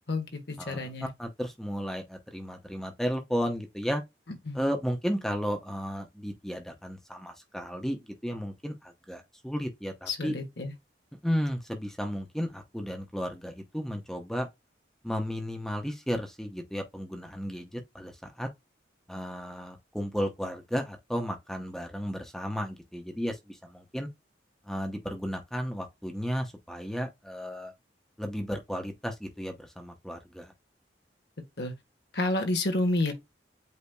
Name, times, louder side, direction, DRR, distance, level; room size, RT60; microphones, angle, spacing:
voice 1, 0.1-1.1 4.5-4.6 10.1-10.7 31.6-31.7 32.1-33.1, left 2 dB, 65° left, 1.4 m, -29 dB
voice 2, 1.2-4.0 4.5-10.3 11.2-14.5 15.0-18.5 19.1-24.1 24.7-27.7 28.2-30.5, equal, ahead, 0.8 m, -34 dB
8.3 x 2.8 x 2.2 m
head